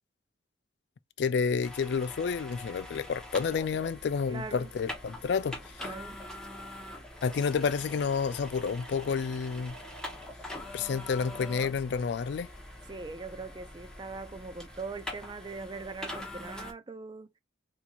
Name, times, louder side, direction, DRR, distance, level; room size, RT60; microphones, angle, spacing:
voice 1, 1.2-5.9 7.2-9.8 10.7-12.5, left 5 dB, 65° left, 0.3 m, -30 dB
sound 1, 1.6-16.7, left 1 dB, 5° left, 0.8 m, -44 dB
voice 2, 4.3-4.7 5.8-6.2 12.9-17.3, right 4 dB, 25° right, 0.4 m, -41 dB
4.3 x 2.7 x 2.3 m
head